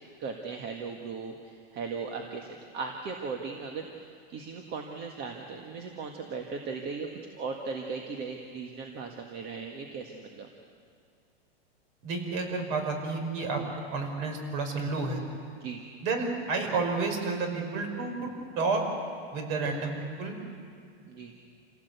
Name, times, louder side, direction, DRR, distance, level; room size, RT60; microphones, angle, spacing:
voice 1, 0.2-10.5 15.5-15.8 21.0-21.3, right 4 dB, 30° right, 3 dB, 1.8 m, -38 dB
voice 2, 12.0-13.6 13.9-15.2 16.0-18.8 19.3-20.4, right 3 dB, 45° right, 4 dB, 5.1 m, -30 dB
28.0 x 17.0 x 8.2 m, 2.3 s
supercardioid pair, 150°, 32 cm